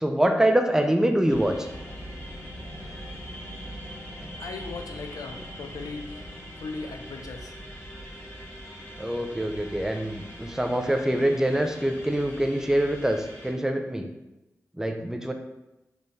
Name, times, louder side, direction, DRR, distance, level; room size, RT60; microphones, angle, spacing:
voice 1, 0.0-1.7 9.0-14.1 14.8-15.3, right 1 dB, 10° right, 5 dB, 0.5 m, -25 dB
sound 1, 1.3-13.5, equal, 35° left, 1.3 m, -41 dB
voice 2, 4.4-6.3 6.6-7.6, left 4 dB, 85° left, 5 dB, 0.4 m, -38 dB
4.3 x 3.4 x 3.2 m, 0.97 s
cardioid pair, 55°, 6 cm